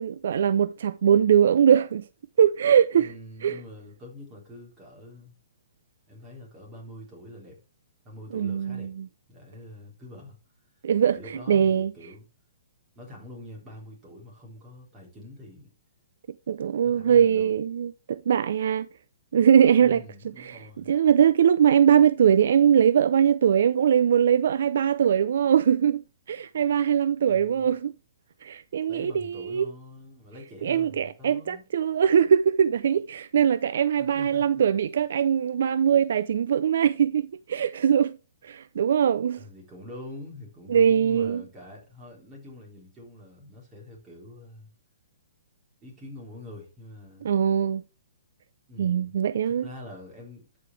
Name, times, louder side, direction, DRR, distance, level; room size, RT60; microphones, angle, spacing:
voice 1, 0.0-2.0 2.4-3.1 3.4-3.6 8.3-9.1 10.8-11.2 11.5-11.9 16.5-18.9 19.3-20.0 20.8-27.9 28.4-29.7 30.6-38.2 38.4-39.4 40.7-41.4 47.2-47.8 48.8-49.6, right 8 dB, 65° right, 0.4 m, -21 dB
voice 2, 2.9-5.4 6.1-7.6 8.0-8.9 9.3-10.4 11.0-12.3 13.0-15.7 16.8-17.6 19.8-20.9 27.3-27.7 28.9-31.6 34.0-34.6 39.4-44.7 45.8-47.3 48.7-49.2 49.4-50.5, left 1 dB, 15° right, 3.7 m, -45 dB
12.5 x 5.1 x 3.3 m
hypercardioid pair, 160°, 0 cm